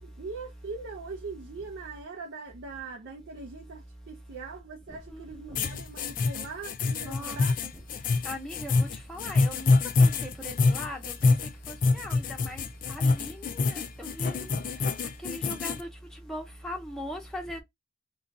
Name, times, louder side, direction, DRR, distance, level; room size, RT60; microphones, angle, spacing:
voice 1, 0.0-7.5, right 4 dB, 60° right, 0.5 m, -41 dB
sound 1, 5.5-15.8, left 3 dB, 40° left, 0.3 m, -26 dB
voice 2, 7.1-7.4 8.2-9.7 10.0-11.3 11.7-12.6 12.9-14.5 15.2-15.9 16.3-17.6, equal, 5° left, 0.7 m, -39 dB
2.5 x 2.2 x 3.7 m
head